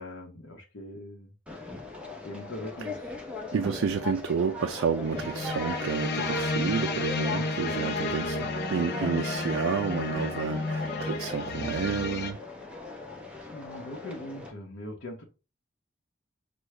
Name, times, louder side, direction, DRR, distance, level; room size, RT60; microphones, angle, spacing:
voice 1, 0.0-1.3 2.2-3.1 13.4-15.2, left 1 dB, 85° left, 0.9 m, -41 dB
Conversation, 1.5-14.5, left 3 dB, 5° right, 0.8 m, -39 dB
voice 2, 3.5-12.4, right 6 dB, 80° right, 0.4 m, -30 dB
sound 1, 5.0-12.3, left 2 dB, 55° left, 0.6 m, -31 dB
6.2 x 2.3 x 3.2 m
head